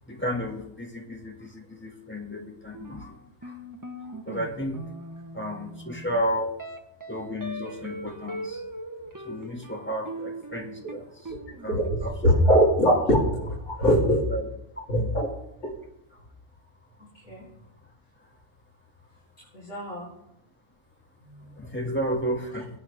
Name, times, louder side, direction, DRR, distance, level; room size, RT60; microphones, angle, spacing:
voice 1, 0.1-3.1 3.4-3.5 4.3-4.8 5.3-6.5 7.1-8.6 9.2-11.1 11.6-12.1 14.3-14.5 15.0-15.1 21.6-22.7, equal, 10° left, -1 dB, 1.8 m, -32 dB
sound 1, 2.7-11.9, right 1 dB, 20° right, 0.8 m, -40 dB
voice 2, 12.2-14.3 14.9-15.3 17.3-17.5 19.5-20.1 21.2-21.6, equal, 60° left, -6 dB, 3.2 m, -22 dB
23.5 x 8.6 x 3.4 m, 0.82 s
omnidirectional pair, 1.3 m